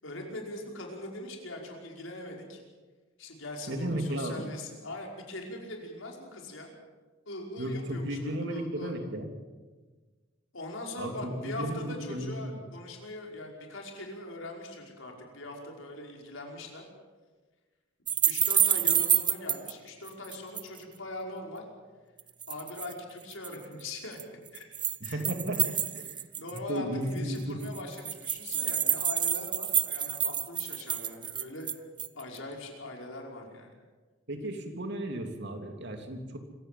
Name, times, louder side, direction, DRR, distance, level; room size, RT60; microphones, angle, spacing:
voice 1, 0.0-2.6 3.2-6.7 7.3-8.9 10.5-16.9 18.2-21.7 22.5-24.6 25.0-25.2 25.6-25.8 26.0-31.7 32.2-33.8, left 2 dB, 75° left, 1 dB, 5.3 m, -41 dB
voice 2, 3.7-4.4 7.6-9.3 11.0-12.6 25.0-26.1 26.7-27.7 34.3-36.4, right 1 dB, 60° right, 4 dB, 3.1 m, -34 dB
sound 1, 18.1-19.7 20.1-20.8 22.2-22.9 23.3-23.6 24.2-26.7 27.1-27.2 27.4-27.5 27.6-32.2, right 9 dB, 25° right, 0.7 m, -28 dB
26.0 x 16.0 x 7.7 m, 1.3 s
head